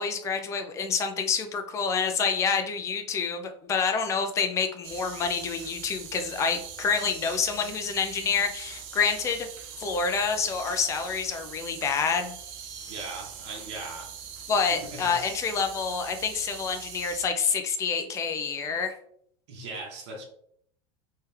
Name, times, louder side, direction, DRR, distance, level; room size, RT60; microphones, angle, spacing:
voice 1, 0.0-9.5 9.8-12.3 14.5-18.9, left 5 dB, 20° left, 6 dB, 0.4 m, -27 dB
sound 1, 4.8-17.3, right 7 dB, 50° right, 0.7 m, -42 dB
voice 2, 12.9-14.1 14.7-15.2 19.5-20.2, right 3 dB, 75° right, 0 dB, 1.3 m, -39 dB
3.2 x 3.2 x 3.3 m, 0.66 s
supercardioid pair, 160°, 15 cm